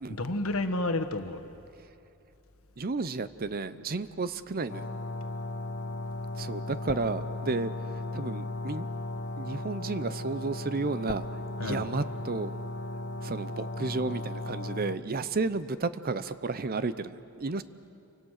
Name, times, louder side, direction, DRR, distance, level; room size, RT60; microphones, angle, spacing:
voice 1, 0.1-1.4 11.6-11.9, left 2 dB, 70° left, 7 dB, 1.4 m, -30 dB
voice 2, 2.8-4.9 6.4-8.9 9.4-11.3 11.6-12.5 13.2-17.6, right 3 dB, 45° right, 14 dB, 0.7 m, -32 dB
sound 1, 4.7-15.0, left 2 dB, 55° left, 0.9 m, -36 dB
29.0 x 24.5 x 6.5 m, 2.8 s
head